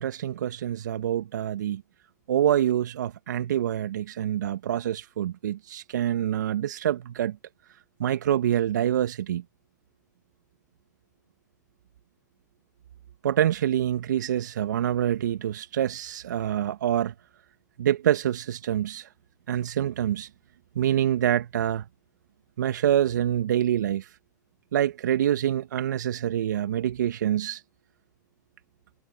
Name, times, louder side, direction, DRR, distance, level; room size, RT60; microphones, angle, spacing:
voice 1, 0.0-1.8 2.3-7.4 8.0-9.4 13.2-17.1 17.8-19.1 19.5-20.3 20.7-21.8 22.6-24.1 24.7-27.6, right 11 dB, 75° right, 1.5 m, -26 dB
hypercardioid pair, 100°, 10 cm